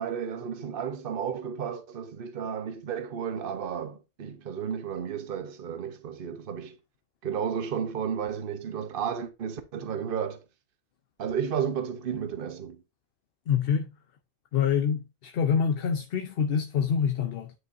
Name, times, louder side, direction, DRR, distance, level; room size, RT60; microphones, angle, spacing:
voice 1, 0.0-6.8 7.2-10.4 11.2-12.8, right 7 dB, 55° right, 1.0 m, -32 dB
voice 2, 13.5-13.9 14.5-17.5, left 7 dB, 60° left, 0.8 m, -26 dB
10.0 x 4.9 x 2.6 m
omnidirectional pair, 1.1 m